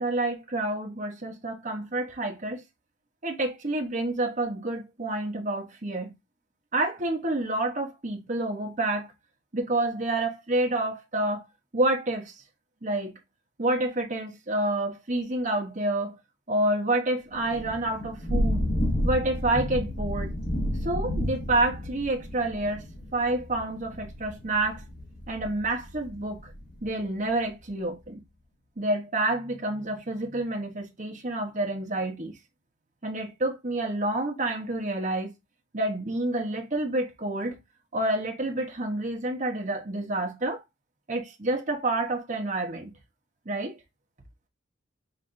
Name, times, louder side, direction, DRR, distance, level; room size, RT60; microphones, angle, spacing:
voice 1, 0.0-2.6 3.2-6.1 6.7-9.1 9.5-11.4 11.7-12.3 12.8-13.2 13.6-16.2 16.5-18.6 19.0-20.3 20.8-22.9 23.1-24.8 25.3-26.4 26.8-28.2 28.8-32.3 33.0-35.3 35.7-37.6 37.9-40.6 41.1-42.9 43.5-43.8, right 2 dB, 40° right, 1.0 m, -28 dB
Thunder / Rain, 17.3-26.9, equal, 50° left, 1.4 m, -31 dB
5.5 x 3.3 x 2.6 m
head